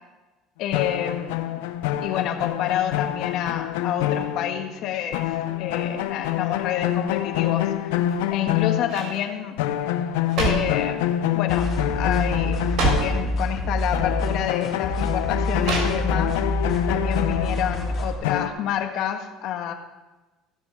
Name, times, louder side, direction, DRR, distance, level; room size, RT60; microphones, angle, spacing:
voice 1, 0.6-1.5 2.0-5.2 5.6-7.7 8.3-9.6 10.4-16.4 16.9-19.7, left 10 dB, 65° left, 5 dB, 1.4 m, -28 dB
sound 1, 0.7-4.9 5.1-9.3 9.6-13.7 13.9-18.5, left 12 dB, 90° left, 0.7 m, -26 dB
sound 2, 8.0-8.4 8.8-9.2 10.0-10.8 11.6-11.9 12.1-12.2 12.6-13.2 14.1-14.2 15.6-16.3 16.7-16.8, right 4 dB, 55° right, 3.8 m, -28 dB
sound 3, 11.5-18.1, left 1 dB, 45° left, 4.5 m, -27 dB
16.0 x 7.1 x 4.7 m, 1.1 s
supercardioid pair, 115°, 0 cm